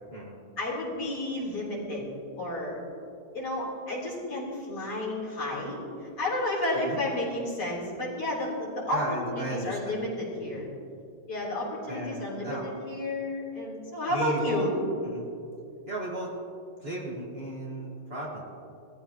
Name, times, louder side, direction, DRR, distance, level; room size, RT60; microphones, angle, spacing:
voice 1, 0.6-2.1 2.4-2.8 3.3-10.7 11.3-14.8, left 1 dB, 60° left, -6 dB, 4.3 m, -31 dB
voice 2, 8.9-10.0 10.5-10.6 11.9-12.7 14.1-14.7 15.0-15.3 15.9-16.3 16.8-18.4, right 1 dB, 35° right, -4 dB, 1.9 m, -35 dB
20.5 x 14.0 x 3.0 m, 2.6 s
omnidirectional pair, 2.0 m